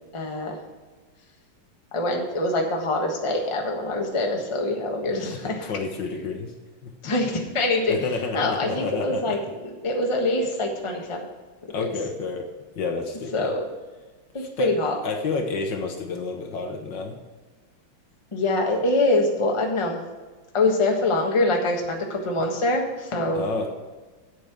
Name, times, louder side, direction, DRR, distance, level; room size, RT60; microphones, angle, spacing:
voice 1, 0.1-0.6 1.9-5.7 7.0-8.0 8.3-9.4 9.6-11.3 11.8-11.9 13.3-13.6 14.3-15.0 18.3-20.0 20.5-23.4, left 2 dB, 15° left, 1 dB, 1.1 m, -24 dB
voice 2, 5.2-6.5 6.8-6.9 7.9-9.4 11.7-12.5 12.7-13.5 14.4-14.7 15.0-17.2 23.3-23.7, left 4 dB, 60° left, 4 dB, 1.6 m, -30 dB
8.4 x 7.9 x 5.9 m, 1.3 s
omnidirectional pair, 2.4 m